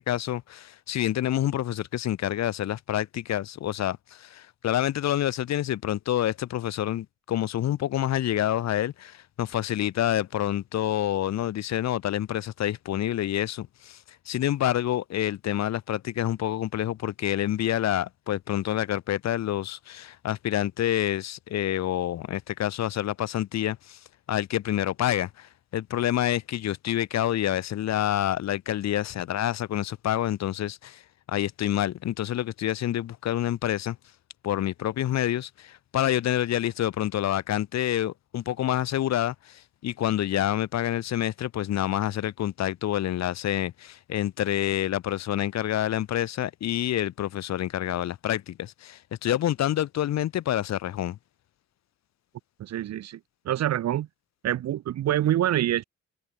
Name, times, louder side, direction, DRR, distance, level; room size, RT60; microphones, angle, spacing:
voice 1, 0.0-14.0 14.3-24.0 24.3-31.0 31.3-34.0 34.4-51.2, left 12 dB, 60° left, 1.0 m, -27 dB
voice 2, 52.6-53.2 53.4-54.1 54.4-55.8, right 12 dB, 60° right, 0.9 m, -26 dB
open air
cardioid pair, 90°, 30 cm